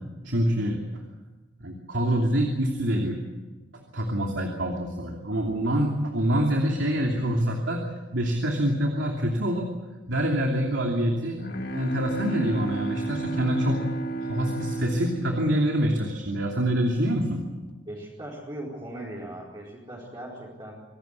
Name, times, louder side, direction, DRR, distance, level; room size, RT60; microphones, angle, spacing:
voice 1, 0.2-0.8 1.6-3.2 3.9-7.8 8.1-9.7 10.1-13.9 14.2-17.4, equal, 80° right, 2 dB, 2.9 m, -26 dB
Bowed string instrument, 11.3-16.5, right 3 dB, 55° left, 2.0 m, -33 dB
voice 2, 17.9-20.7, right 1 dB, 25° right, -6 dB, 4.8 m, -39 dB
26.0 x 18.5 x 8.3 m, 1.2 s
head